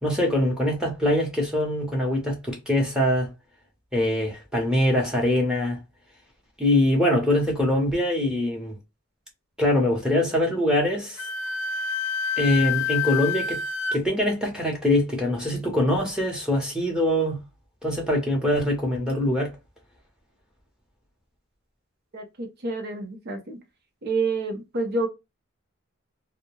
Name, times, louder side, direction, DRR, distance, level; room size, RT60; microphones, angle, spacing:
voice 1, 0.0-3.3 3.9-5.8 6.6-8.8 9.6-11.2 12.4-13.6 13.9-17.4 17.8-19.6, left 1 dB, 5° right, 0.7 m, -23 dB
Wind instrument woodwind instrument, 11.2-14.0, left 6 dB, 60° left, 0.4 m, -27 dB
voice 2, 22.1-23.6 24.0-25.1, right 3 dB, 50° right, 0.6 m, -28 dB
2.2 x 2.1 x 3.0 m
head